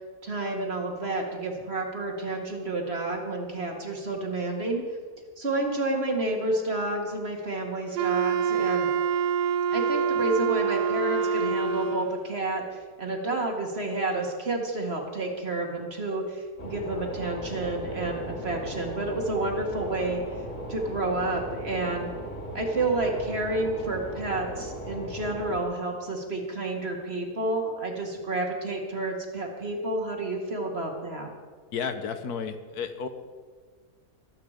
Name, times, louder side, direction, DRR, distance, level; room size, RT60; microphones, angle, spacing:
voice 1, 0.2-4.8 5.4-8.9 9.7-20.4 20.7-22.1 22.5-31.3, right 2 dB, 40° right, 1 dB, 2.2 m, -30 dB
Wind instrument woodwind instrument, 7.9-12.2, right 6 dB, 90° right, 1.2 m, -26 dB
sound 1, 16.6-25.6, equal, 50° left, 2.7 m, -37 dB
voice 2, 31.7-33.1, left 6 dB, 75° left, 8 dB, 1.5 m, -32 dB
23.5 x 8.2 x 5.1 m, 1.5 s
omnidirectional pair, 1.7 m